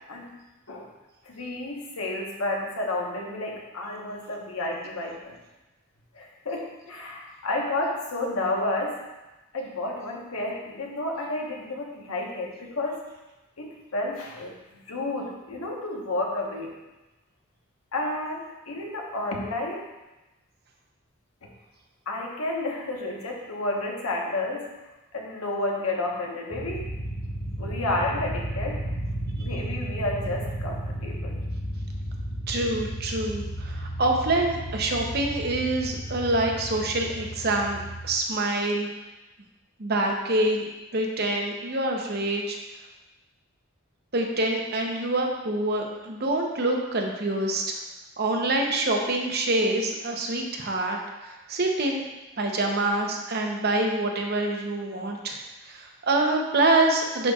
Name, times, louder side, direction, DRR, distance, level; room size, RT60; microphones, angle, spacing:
voice 1, 1.2-5.4 6.1-9.0 9.5-13.0 13.6-16.7 17.9-19.8 22.1-24.7 25.1-26.9 27.6-28.9 29.4-31.4, left 2 dB, 85° left, -1 dB, 1.2 m, -31 dB
sound 1, 26.5-38.2, right 1 dB, 20° left, 1.0 m, -33 dB
voice 2, 32.5-38.9 39.8-40.7 40.9-42.6 44.1-47.6 48.2-52.0 52.4-55.4 55.7-57.3, right 2 dB, 50° right, 1 dB, 0.8 m, -26 dB
10.5 x 4.2 x 2.4 m, 1.1 s
head